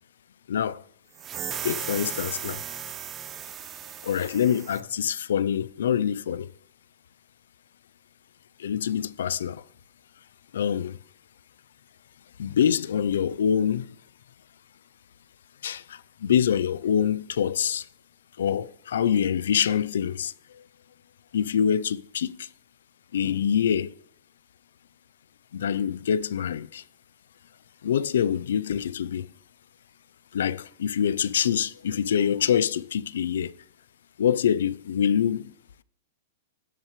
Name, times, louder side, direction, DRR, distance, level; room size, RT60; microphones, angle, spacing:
voice 1, 0.5-0.8 1.6-2.6 4.0-6.5 8.6-9.6 10.5-11.0 12.4-14.0 15.6-17.9 18.4-20.6 21.3-22.5 23.1-23.9 25.5-26.8 27.8-29.3 30.3-33.5 34.2-35.5, left 8 dB, 85° left, 0.5 m, -25 dB
sound 1, 1.2-4.8, right 9 dB, 20° right, 0.8 m, -36 dB
17.0 x 7.4 x 3.2 m
hypercardioid pair, 150°, 0 cm